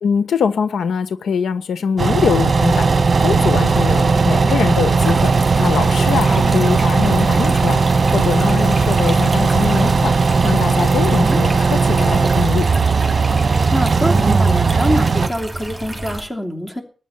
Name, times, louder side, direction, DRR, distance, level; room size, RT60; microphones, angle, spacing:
voice 1, 0.0-2.9 3.2-5.3 5.6-7.8 8.1-10.2 10.4-12.7, left 6 dB, 85° left, 1.2 m, -22 dB
sound 1, 2.0-15.3, right 4 dB, 35° right, 1.3 m, -16 dB
sound 2, 4.9-16.2, right 2 dB, 10° right, 4.9 m, -30 dB
voice 2, 6.3-6.7 11.1-11.4 13.7-16.8, equal, 10° left, 2.9 m, -25 dB
19.5 x 10.0 x 5.8 m
wide cardioid pair, 155°, 0 cm